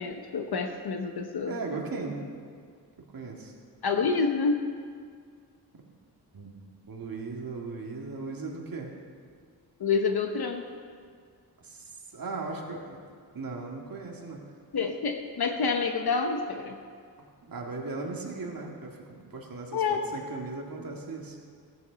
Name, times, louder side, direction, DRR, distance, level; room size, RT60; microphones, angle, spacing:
voice 1, 0.0-1.5 3.8-4.7 9.8-10.7 14.7-16.8 19.7-20.1, left 4 dB, 65° left, 5 dB, 0.9 m, -28 dB
voice 2, 1.5-2.2 3.1-3.5 6.3-6.5 6.9-8.9 11.6-13.0 13.3-14.4 15.4-15.5 17.4-21.4, right 3 dB, 55° right, 0 dB, 2.1 m, -37 dB
15.5 x 8.5 x 5.2 m, 2.1 s
cardioid pair, 80°, 40 cm